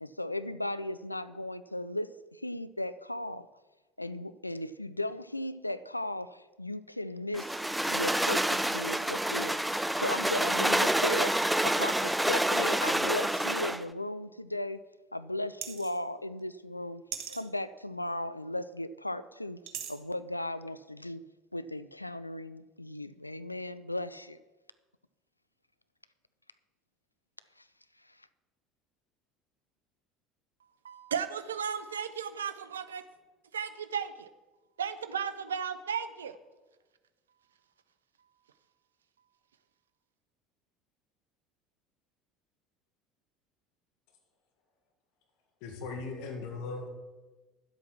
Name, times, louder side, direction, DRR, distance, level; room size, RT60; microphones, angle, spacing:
voice 1, 0.0-3.5 4.0-7.6 7.9-14.8 15.1-19.6 19.9-21.2 21.5-24.4, left 1 dB, 85° left, 0.3 m, -36 dB
sound 1, 7.3-13.8, right 1 dB, 5° right, 0.4 m, -28 dB
sound 2, 15.6-16.0 17.1-17.4 19.7-19.9, right 9 dB, 50° right, 1.2 m, -39 dB
voice 2, 30.8-33.0 33.5-34.3 34.8-36.4, right 7 dB, 75° right, 0.6 m, -35 dB
voice 3, 45.6-46.9, left 3 dB, 55° left, 1.7 m, -38 dB
10.0 x 7.9 x 5.8 m
figure-of-eight pair, 65°, 0 cm